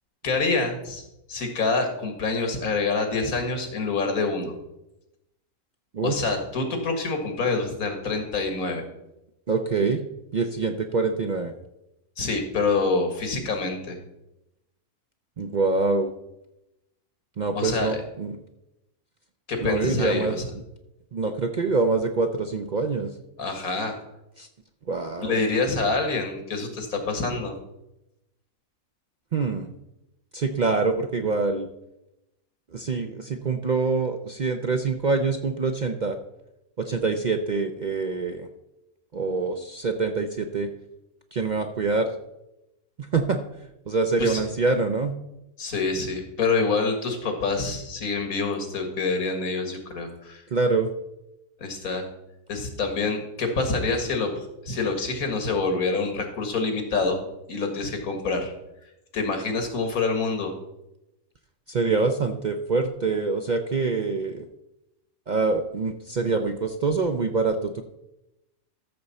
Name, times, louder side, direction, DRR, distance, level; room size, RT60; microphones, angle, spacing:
voice 1, 0.2-1.0 1.3-4.5 6.0-8.8 12.2-14.0 17.6-18.0 19.5-20.5 23.4-24.0 25.2-27.6 44.2-44.4 45.6-50.4 51.6-52.0 52.5-57.2 57.5-58.5 59.1-60.5, left 3 dB, 90° left, 5 dB, 2.1 m, -26 dB
voice 2, 9.5-10.0 10.3-11.5 15.4-16.1 17.4-18.4 19.6-20.4 21.1-23.1 24.4-24.5 24.9-25.4 29.3-29.7 30.3-31.7 32.7-36.2 36.8-38.5 39.1-40.7 41.3-42.1 43.0-43.4 43.9-45.2 50.5-50.9 61.7-64.5 65.3-67.8, right 4 dB, 50° right, 6 dB, 0.5 m, -25 dB
13.5 x 6.7 x 4.1 m, 0.90 s
omnidirectional pair, 1.4 m